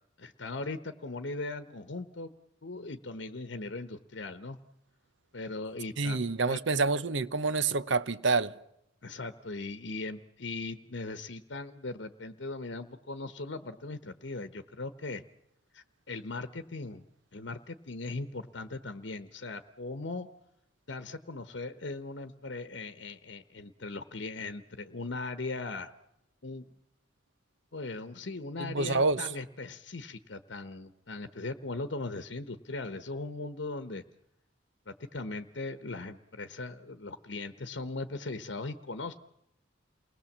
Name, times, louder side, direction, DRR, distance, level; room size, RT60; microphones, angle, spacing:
voice 1, 0.2-2.3 2.6-4.6 5.3-6.2 6.5-6.6 9.0-15.2 15.7-17.0 17.3-20.3 20.9-25.9 26.4-26.7 27.7-34.0 34.9-39.1, left 3 dB, 65° left, 1.0 m, -39 dB
voice 2, 6.0-8.5 28.6-29.3, right 3 dB, 70° right, 0.9 m, -28 dB
29.0 x 20.0 x 7.3 m
head